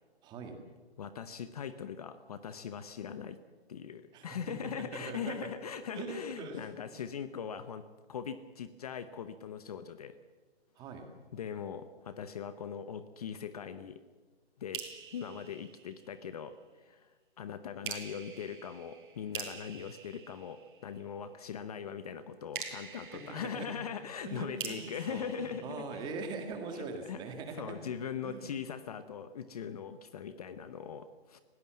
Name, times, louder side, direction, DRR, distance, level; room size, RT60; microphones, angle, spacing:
voice 1, 0.2-0.6 4.1-5.4 5.9-6.7 6.9-7.0 10.8-11.1 23.1-23.7 24.2-27.8 28.2-28.5, right 4 dB, 15° right, 5 dB, 1.8 m, -42 dB
voice 2, 1.0-3.4 3.7-10.2 11.3-14.0 14.6-26.1 26.7-27.2 27.6-31.4, left 7 dB, 35° left, 12 dB, 0.9 m, -41 dB
sound 1, 14.7-16.5 17.8-21.2 22.5-26.4, right 6 dB, 50° right, 4.4 m, -46 dB
20.5 x 17.0 x 7.6 m, 1.4 s
hypercardioid pair, 160°, 32 cm